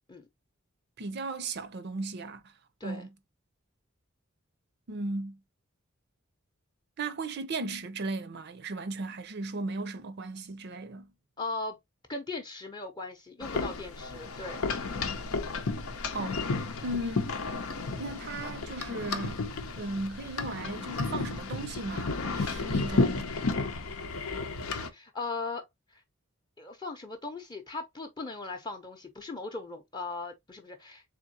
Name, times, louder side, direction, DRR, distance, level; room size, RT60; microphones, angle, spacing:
voice 1, 1.0-2.5 2.8-3.1 4.9-5.4 7.0-11.1 16.1-16.4 16.8-17.4 18.0-19.4 19.8-23.3, right 2 dB, 50° right, 0.5 m, -36 dB
voice 2, 11.4-11.8 12.1-14.6 24.9-25.6 25.9-26.0 26.6-31.0, left 3 dB, 20° left, 0.6 m, -38 dB
sound 1, 13.4-24.9, left 3 dB, 90° left, 0.7 m, -32 dB
3.5 x 3.5 x 2.7 m
head